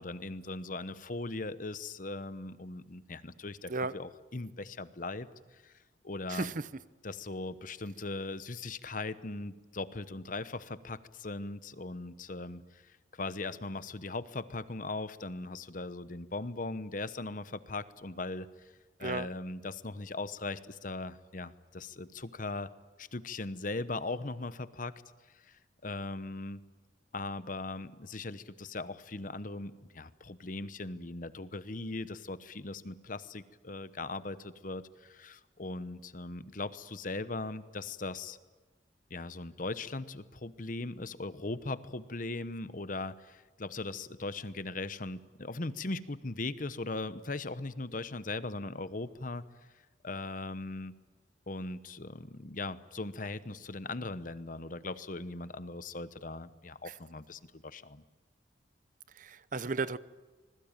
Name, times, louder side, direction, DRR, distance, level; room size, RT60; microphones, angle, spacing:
voice 1, 0.0-5.7 6.0-6.5 7.0-18.5 19.0-22.7 23.0-25.0 25.4-26.6 27.1-38.4 39.1-49.4 50.0-50.9 51.5-58.0, left 2 dB, 45° left, 14 dB, 1.0 m, -39 dB
voice 2, 6.3-6.6 19.0-19.3 59.2-60.0, right 3 dB, 45° right, 16 dB, 0.7 m, -34 dB
26.0 x 21.0 x 9.0 m, 1.3 s
head